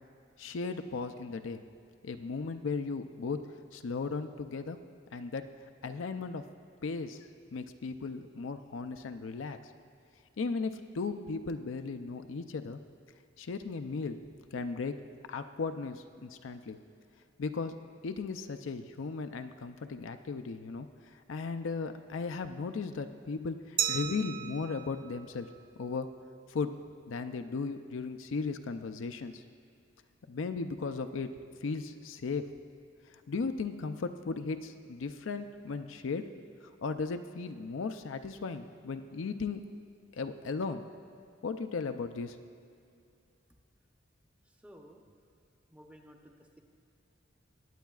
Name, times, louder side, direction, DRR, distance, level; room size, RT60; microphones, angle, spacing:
voice 1, 0.4-1.6 2.0-3.4 3.7-4.8 5.1-5.5 5.8-6.4 6.8-9.6 10.4-12.8 13.4-14.2 14.5-15.0 15.3-16.8 17.4-17.7 18.0-20.9 21.3-25.5 25.8-26.1 26.5-26.8 27.1-29.4 30.3-31.3 31.6-32.4 33.1-36.3 36.8-39.6 40.1-40.8 41.4-42.4, left 4 dB, 90° left, 8 dB, 0.5 m, -36 dB
Glass, 23.8-26.5, right 9 dB, 50° right, 0.3 m, -37 dB
voice 2, 44.5-45.0 45.7-46.6, equal, 5° right, 2 dB, 0.7 m, -55 dB
20.5 x 8.3 x 2.4 m, 2.4 s
head